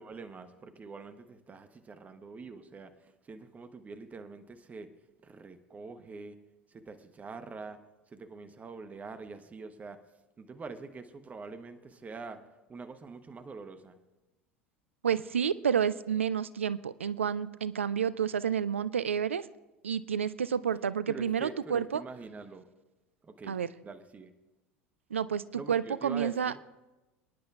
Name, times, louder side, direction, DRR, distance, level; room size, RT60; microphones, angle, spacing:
voice 1, 0.0-4.9 5.2-6.4 6.7-7.8 8.1-10.0 10.4-12.4 12.7-14.0 21.1-22.7 23.2-24.3 25.5-26.5, right 4 dB, 20° right, 9 dB, 0.9 m, -45 dB
voice 2, 15.0-19.5 19.8-22.0 23.5-23.7 25.1-26.5, right 8 dB, 80° right, 17 dB, 0.4 m, -30 dB
28.5 x 10.0 x 2.4 m, 1.0 s
figure-of-eight pair, 75°, 7 cm